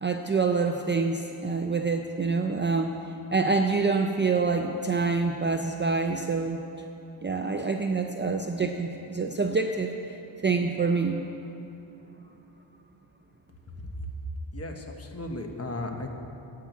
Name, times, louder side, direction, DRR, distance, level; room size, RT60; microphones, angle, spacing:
voice 1, 0.0-2.9 3.3-6.6 7.2-10.2 10.4-11.2, right 4 dB, 25° right, 4 dB, 0.5 m, -26 dB
voice 2, 14.5-16.1, left 2 dB, 30° left, 3 dB, 1.2 m, -35 dB
10.5 x 8.6 x 8.2 m, 2.8 s
wide cardioid pair, 140°, 48 cm